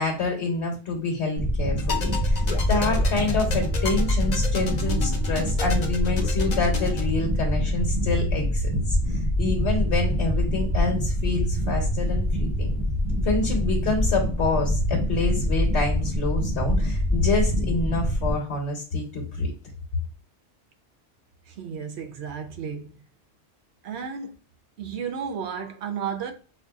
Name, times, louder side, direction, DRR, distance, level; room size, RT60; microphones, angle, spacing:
voice 1, 0.0-2.4 2.7-12.7 13.2-19.5, left 3 dB, 75° left, 1.2 m, -27 dB
sound 1, 1.4-18.3, equal, 20° right, 1.0 m, -25 dB
sound 2, 1.8-7.1, left 4 dB, 45° left, 0.7 m, -34 dB
voice 2, 21.5-22.9 23.8-24.3 24.8-26.3, right 7 dB, 70° right, 0.9 m, -33 dB
4.6 x 2.5 x 2.3 m
omnidirectional pair, 1.2 m